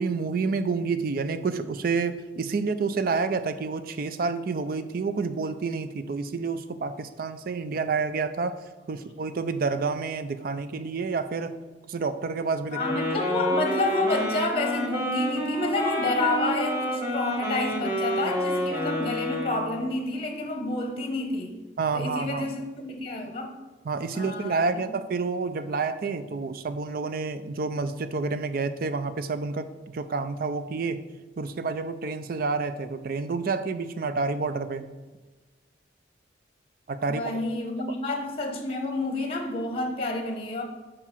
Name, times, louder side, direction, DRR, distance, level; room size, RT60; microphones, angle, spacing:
voice 1, 0.0-11.5 11.9-13.0 21.8-22.5 23.8-31.0 31.4-34.9 36.9-37.3, right 4 dB, 50° right, 11 dB, 0.4 m, -29 dB
voice 2, 12.7-21.6 21.9-23.5 24.1-24.7 37.1-40.6, left 2 dB, 30° left, 3 dB, 0.9 m, -29 dB
Wind instrument woodwind instrument, 12.7-19.9, equal, 15° right, 1.4 m, -29 dB
5.0 x 4.6 x 5.7 m, 1.3 s
head